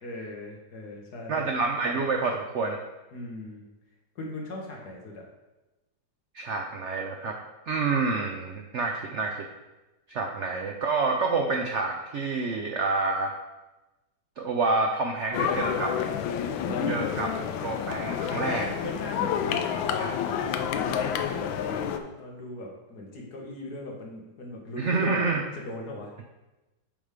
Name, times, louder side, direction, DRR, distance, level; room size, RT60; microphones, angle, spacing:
voice 1, 0.0-1.4 3.1-3.7 4.2-5.2 16.6-17.0 18.3-19.9 20.7-26.1, left 2 dB, 60° left, -1 dB, 1.8 m, -38 dB
voice 2, 1.3-2.8 6.3-7.4 7.7-9.4 10.1-13.3 14.4-15.9 16.9-17.3 17.6-18.7 20.0-20.1 24.8-25.4, right 3 dB, 85° right, 3 dB, 0.6 m, -28 dB
sound 1, 15.3-22.0, left 8 dB, 85° left, 1.4 m, -29 dB
8.7 x 3.6 x 5.0 m, 1.0 s
omnidirectional pair, 2.0 m